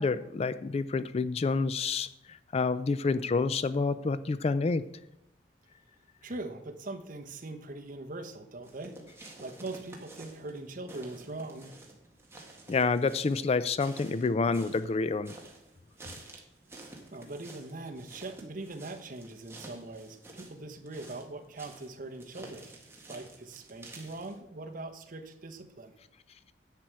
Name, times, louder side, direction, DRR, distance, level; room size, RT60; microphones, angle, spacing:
voice 1, 0.0-4.8 12.7-15.3, left 4 dB, 35° left, 14 dB, 0.3 m, -28 dB
voice 2, 6.2-8.9 9.4-11.8 17.1-22.7 23.1-25.9, right 2 dB, 50° right, 6 dB, 1.0 m, -41 dB
sound 1, 8.6-24.4, right 2 dB, 15° right, 1.7 m, -51 dB
10.5 x 7.6 x 4.6 m, 0.83 s
head